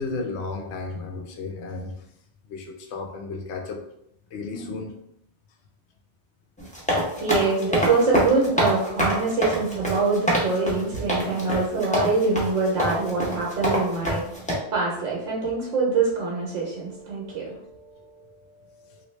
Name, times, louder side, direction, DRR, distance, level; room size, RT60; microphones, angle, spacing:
voice 1, 0.0-2.1 2.4-3.8 4.3-5.0, left 3 dB, 70° left, 3 dB, 0.8 m, -33 dB
sound 1, 6.6-14.6, equal, 10° left, 0.5 m, -25 dB
voice 2, 7.1-18.3, right 4 dB, 85° right, -5 dB, 1.2 m, -25 dB
3.1 x 2.7 x 3.1 m, 0.77 s
omnidirectional pair, 1.3 m